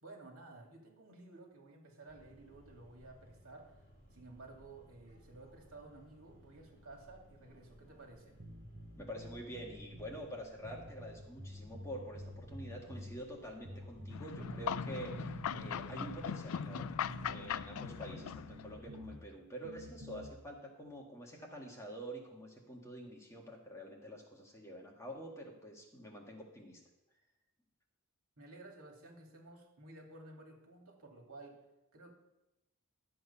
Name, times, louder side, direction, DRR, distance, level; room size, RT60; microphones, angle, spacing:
voice 1, 0.0-8.4 28.4-31.6 31.9-32.1, right 2 dB, 75° right, 1 dB, 2.5 m, -54 dB
sound 1, 2.1-18.8, equal, 45° left, 3.0 m, -61 dB
sound 2, 8.4-10.2 10.6-13.2 13.6-16.2 16.6-19.2 19.6-20.3, equal, 50° right, 1.4 m, -48 dB
voice 2, 8.9-26.8, right 1 dB, 15° left, -1 dB, 1.6 m, -47 dB
sound 3, 14.1-18.8, left 8 dB, 75° left, 0.4 m, -40 dB
12.5 x 7.7 x 5.6 m, 0.96 s
head